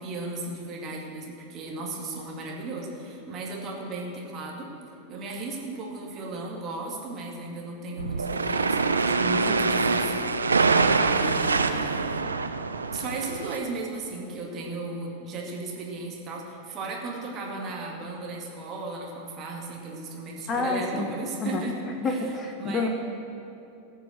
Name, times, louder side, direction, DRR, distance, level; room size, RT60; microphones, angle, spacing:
voice 1, 0.0-4.7 5.1-12.2 12.9-21.8 22.0-22.3 22.6-22.9, right 2 dB, 30° right, -1 dB, 2.3 m, -36 dB
sound 1, 8.0-13.6, right 4 dB, 75° right, 0.5 m, -24 dB
voice 2, 20.5-21.1 21.4-21.6 22.0-22.9, left 3 dB, 25° left, 4 dB, 1.0 m, -28 dB
18.5 x 6.2 x 6.5 m, 2.8 s
figure-of-eight pair, 90°, 0 cm